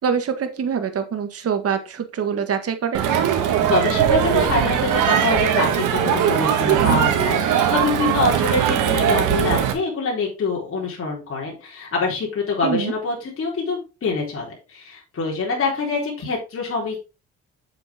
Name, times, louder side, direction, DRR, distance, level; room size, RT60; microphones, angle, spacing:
voice 1, 0.0-3.0 12.6-12.9, right 7 dB, 50° right, 8 dB, 1.8 m, -24 dB
Crowd, 2.9-9.7, right 9 dB, 90° right, 1.6 m, -20 dB
voice 2, 3.5-17.0, left 3 dB, 45° left, -2 dB, 3.9 m, -25 dB
7.7 x 7.5 x 3.6 m, 0.29 s
cardioid pair, 90°, 30 cm